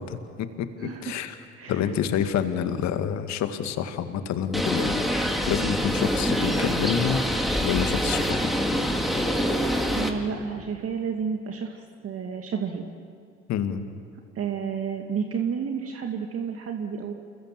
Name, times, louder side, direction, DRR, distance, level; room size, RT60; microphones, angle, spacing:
voice 1, 0.0-1.4 1.7-7.3 7.6-8.6 13.5-13.8, left 8 dB, 60° left, 9 dB, 2.0 m, -28 dB
Bird, 4.5-10.1, equal, ahead, 3.7 m, -25 dB
voice 2, 9.9-12.8 14.4-17.1, right 6 dB, 50° right, 3 dB, 2.1 m, -31 dB
28.5 x 22.0 x 7.7 m, 2.2 s
hypercardioid pair, 55°, 31 cm